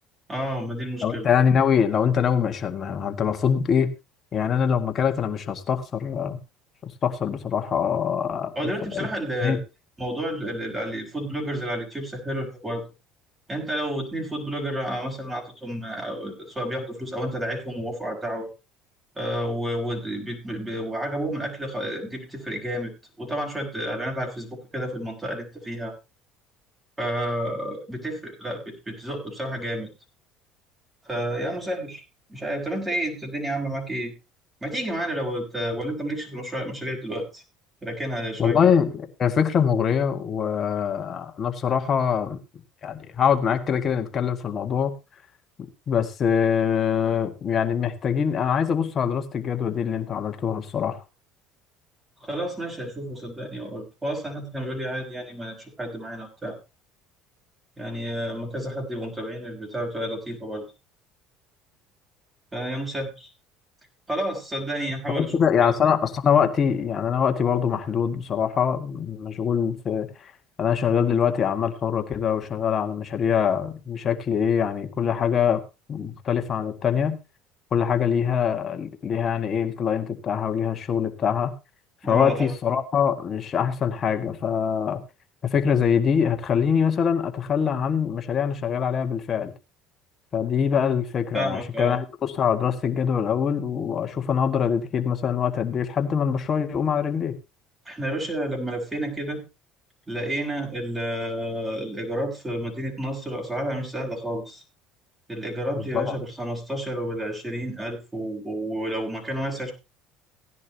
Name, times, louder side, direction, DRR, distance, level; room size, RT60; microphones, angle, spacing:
voice 1, 0.3-1.3 8.6-9.6 10.0-12.8 13.5-18.5 19.2-25.9 27.0-29.9 31.1-32.0 32.3-34.1 34.6-37.4 37.8-38.7 52.2-56.6 57.8-60.6 62.5-63.3 64.1-65.3 82.0-82.5 91.3-92.0 97.9-99.4 100.1-104.6 105.3-109.7, right 1 dB, 15° right, 1 dB, 5.7 m, -30 dB
voice 2, 1.0-3.9 4.3-6.4 6.8-9.1 9.4-9.6 38.4-42.4 42.8-44.9 45.9-51.0 65.2-70.3 70.6-75.6 75.9-77.2 77.7-81.5 82.0-85.0 85.4-89.5 90.3-97.4 105.8-106.2, left 7 dB, 40° left, 6 dB, 1.9 m, -24 dB
17.0 x 10.5 x 2.9 m, 0.26 s
supercardioid pair, 80°, 0 cm